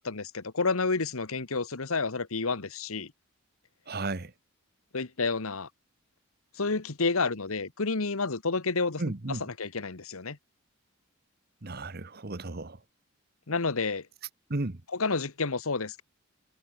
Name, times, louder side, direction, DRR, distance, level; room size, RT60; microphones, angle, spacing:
voice 1, 0.0-3.1 4.9-5.7 6.6-9.0 9.6-10.4 13.5-14.1 15.0-16.0, left 4 dB, 75° left, 1.4 m, -30 dB
voice 2, 3.9-4.3 9.0-9.5 11.6-12.8 14.5-14.8, right 2 dB, 45° right, 1.2 m, -34 dB
head